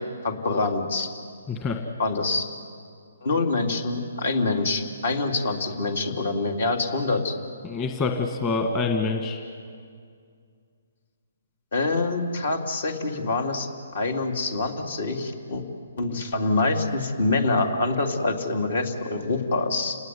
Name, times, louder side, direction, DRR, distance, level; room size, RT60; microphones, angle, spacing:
voice 1, 0.2-1.1 2.0-2.5 3.2-7.3 11.7-13.7 13.9-15.6 16.0-20.0, left 3 dB, 65° left, 4 dB, 3.4 m, -25 dB
voice 2, 1.5-1.8 7.6-9.4, left 4 dB, 20° left, 4 dB, 1.6 m, -26 dB
30.0 x 19.0 x 9.8 m, 2.2 s
hypercardioid pair, 155°, 0 cm